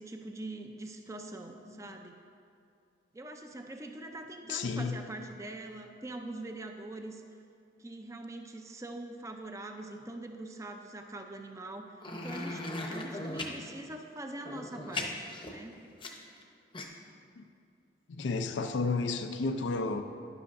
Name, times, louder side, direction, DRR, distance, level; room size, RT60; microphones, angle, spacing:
voice 1, 0.0-2.2 3.1-7.2 7.8-15.8, right 2 dB, 15° right, 4 dB, 0.5 m, -43 dB
voice 2, 4.5-5.0 17.4-17.5 18.1-20.0, left 3 dB, 85° left, 7 dB, 0.5 m, -31 dB
sound 1, 12.0-13.5 14.4-16.4 16.7-16.8, left 2 dB, 25° left, 0.7 m, -38 dB
11.0 x 10.0 x 2.6 m, 2.5 s
head